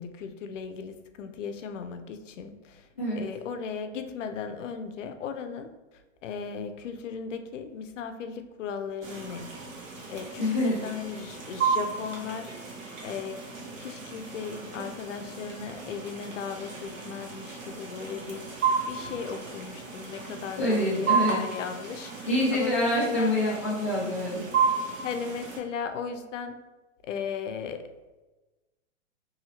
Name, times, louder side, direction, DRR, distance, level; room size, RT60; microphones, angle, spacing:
voice 1, 0.0-2.9 3.2-9.5 10.1-12.5 13.0-23.3 25.0-26.6 27.0-27.9, left 6 dB, 75° left, 7 dB, 0.5 m, -37 dB
sound 1, 9.0-25.6, right 5 dB, 85° right, 1.0 m, -33 dB
voice 2, 10.4-10.8 20.6-21.4 22.3-24.4, left 1 dB, 10° left, -12 dB, 0.3 m, -26 dB
2.7 x 2.7 x 2.8 m, 1.1 s
hypercardioid pair, 165°, 37 cm